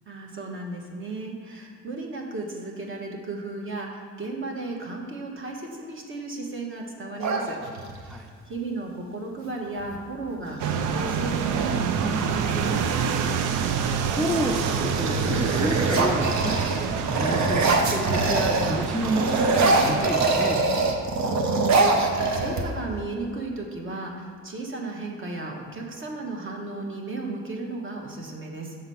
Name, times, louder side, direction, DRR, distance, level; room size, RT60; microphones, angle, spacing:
voice 1, 0.1-7.6 7.9-12.9 21.5-28.7, right 2 dB, 40° right, 0 dB, 1.2 m, -35 dB
sound 1, 7.2-8.1 9.8-10.0 10.3-10.8 11.3-12.8 13.5-13.9 14.2-18.8 19.0-23.0, right 3 dB, 65° right, 0.9 m, -24 dB
sound 2, 10.6-20.1, right 6 dB, 85° right, 0.5 m, -27 dB
voice 2, 14.2-16.6 17.0-20.6, equal, 5° left, 2 dB, 0.4 m, -30 dB
6.5 x 3.9 x 5.6 m, 2.1 s
cardioid pair, 90°, 30 cm